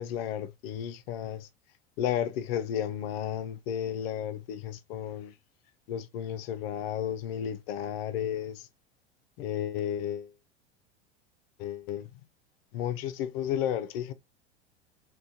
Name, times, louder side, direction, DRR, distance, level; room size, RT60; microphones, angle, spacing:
voice 1, 0.0-1.5 2.0-5.3 5.9-8.7 9.4-10.3 11.6-12.1 12.7-14.1, left 10 dB, 60° left, 0.5 m, -33 dB
2.3 x 2.2 x 2.6 m
hypercardioid pair, 90°, 34 cm